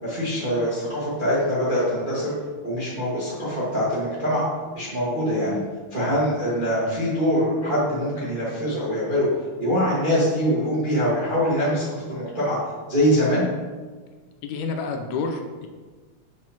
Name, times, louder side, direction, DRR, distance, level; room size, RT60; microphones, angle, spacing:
voice 1, 0.0-2.3 2.6-4.4 4.7-5.6 5.9-9.3 9.6-12.6 12.9-13.4, equal, 30° right, -9 dB, 0.9 m, -23 dB
voice 2, 14.4-15.7, left 4 dB, 90° left, 4 dB, 2.0 m, -29 dB
7.5 x 4.7 x 2.9 m, 1.4 s
omnidirectional pair, 3.3 m